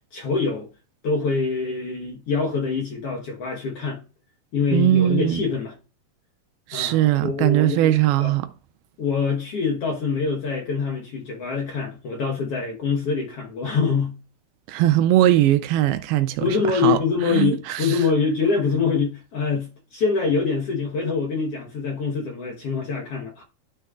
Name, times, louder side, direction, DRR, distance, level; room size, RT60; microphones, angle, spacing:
voice 1, 0.1-0.7 1.0-4.0 4.5-5.7 6.7-8.3 9.0-14.2 16.4-23.4, left 5 dB, 70° left, 1.4 m, -25 dB
voice 2, 4.7-5.4 6.7-8.5 14.7-16.4 16.7-17.0 17.3-18.0, right 13 dB, 85° right, 2.4 m, -20 dB
12.5 x 6.3 x 2.4 m
omnidirectional pair, 4.6 m